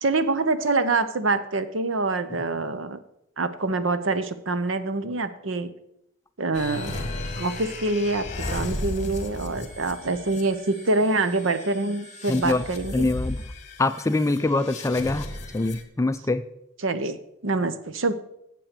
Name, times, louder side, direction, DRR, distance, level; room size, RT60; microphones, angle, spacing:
voice 1, 0.0-3.0 3.4-5.7 6.4-7.0 7.4-8.2 8.5-13.1 16.8-17.2 17.4-18.1, right 3 dB, 70° right, 12 dB, 0.8 m, -25 dB
sound 1, 6.5-15.8, left 2 dB, 35° left, 1.4 m, -35 dB
voice 2, 12.3-12.6 12.9-13.4 13.8-15.3 15.5-16.4, left 2 dB, 15° left, 12 dB, 0.4 m, -24 dB
8.9 x 7.7 x 6.7 m, 0.79 s
head